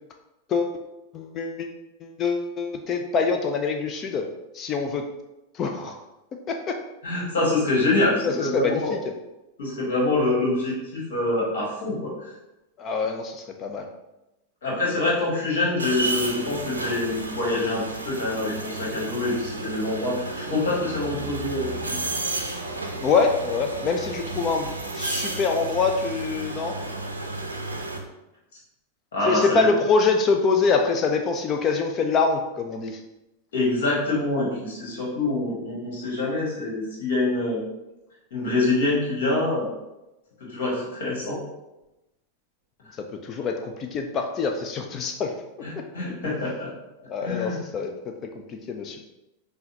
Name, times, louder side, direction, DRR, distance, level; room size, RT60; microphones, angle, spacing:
voice 1, 1.1-1.7 2.0-4.3 4.5-5.0 5.5-6.0 6.5-6.8 8.2-9.1 12.8-13.9 23.0-26.8 29.3-33.0 43.2-45.3 47.1-47.9 48.5-49.0, left 4 dB, 30° left, 4 dB, 0.4 m, -25 dB
voice 2, 7.0-9.0 9.6-12.3 14.6-21.7 29.1-29.6 33.5-37.6 38.3-39.7 40.5-41.4 45.6-46.7 47.2-47.6, left 2 dB, 60° left, -4 dB, 1.5 m, -25 dB
sound 1, 15.8-28.0, right 2 dB, 80° right, 0.5 m, -32 dB
5.4 x 2.2 x 2.7 m, 0.96 s
figure-of-eight pair, 90°, 0 cm